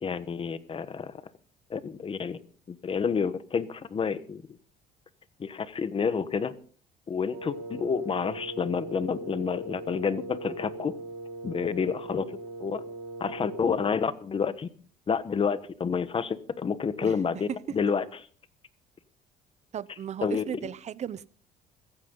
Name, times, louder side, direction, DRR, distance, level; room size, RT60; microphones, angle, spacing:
voice 1, 0.0-1.1 1.7-2.4 2.7-4.4 5.4-6.5 7.1-11.0 11.4-12.8 13.2-14.7 15.1-18.0 20.2-20.7, left 6 dB, 35° left, 1.2 m, -29 dB
Wind instrument woodwind instrument, 7.3-14.0, right 2 dB, 85° right, 4.1 m, -40 dB
voice 2, 19.7-21.3, right 9 dB, 40° right, 0.8 m, -36 dB
16.0 x 14.5 x 3.9 m
cardioid pair, 110°, 17 cm